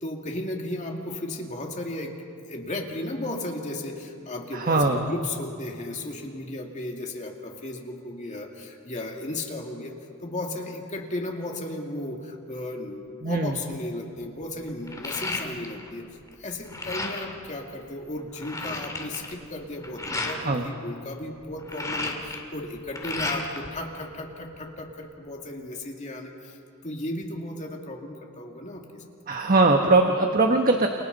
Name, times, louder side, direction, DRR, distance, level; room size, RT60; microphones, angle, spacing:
voice 1, 0.0-2.2 2.5-16.0 16.4-26.6 26.8-28.8, left 1 dB, 35° left, 1 dB, 2.4 m, -35 dB
voice 2, 4.5-5.0 13.2-13.5 20.4-20.7 29.3-30.9, right 3 dB, 40° right, 3 dB, 1.3 m, -21 dB
sound 1, 13.7-13.8 14.2-15.9 16.2-17.4 17.9-18.0 18.2-20.4 21.4-23.7 24.0-24.9, left 2 dB, 15° left, 2.4 m, -33 dB
29.5 x 29.0 x 4.1 m, 2.6 s
head